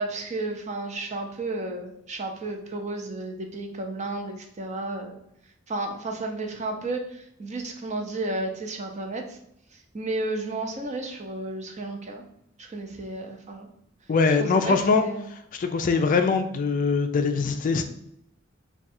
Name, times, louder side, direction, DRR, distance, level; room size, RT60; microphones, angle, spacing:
voice 1, 0.0-5.2 5.7-9.4 9.9-12.2 12.6-13.7 14.4-14.7 15.0-15.3, right 2 dB, 35° right, 3 dB, 0.6 m, -32 dB
voice 2, 14.1-15.0 15.5-17.8, left 4 dB, 40° left, 7 dB, 0.3 m, -22 dB
3.5 x 2.3 x 4.2 m, 0.75 s
head